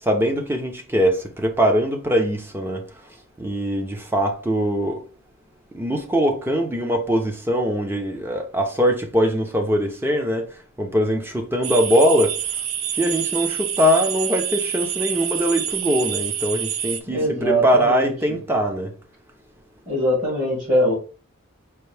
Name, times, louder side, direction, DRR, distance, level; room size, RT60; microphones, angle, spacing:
voice 1, 0.0-2.9 3.4-5.0 5.7-12.4 12.9-18.9, equal, 10° right, 0.6 m, -22 dB
sound 1, 11.6-17.0, right 9 dB, 70° right, 0.5 m, -27 dB
voice 2, 17.1-18.1 19.9-20.9, equal, 35° right, 2.0 m, -22 dB
4.6 x 2.6 x 3.3 m
head